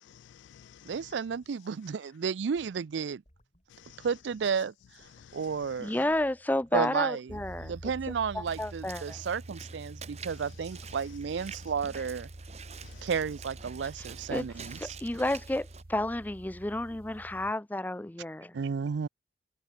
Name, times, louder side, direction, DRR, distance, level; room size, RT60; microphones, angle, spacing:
voice 1, 0.0-1.1 3.7-4.1 5.1-5.6 12.8-13.1, left 9 dB, 75° left, 0.3 m, -54 dB
voice 2, 0.9-3.2 4.0-4.7 5.3-6.0 6.7-12.3 13.0-14.8 18.5-19.1, right 6 dB, 75° right, 0.4 m, -32 dB
sound 1, 2.4-8.9, equal, 35° left, 5.3 m, -64 dB
voice 3, 5.8-7.7 8.3-9.2 12.0-12.1 14.3-18.5, left 1 dB, 10° left, 0.4 m, -31 dB
sound 2, 7.3-17.5, right 1 dB, 50° right, 1.2 m, -47 dB
Walk footsteps / Splash splatter, 8.4-15.8, right 7 dB, 35° right, 2.2 m, -48 dB
head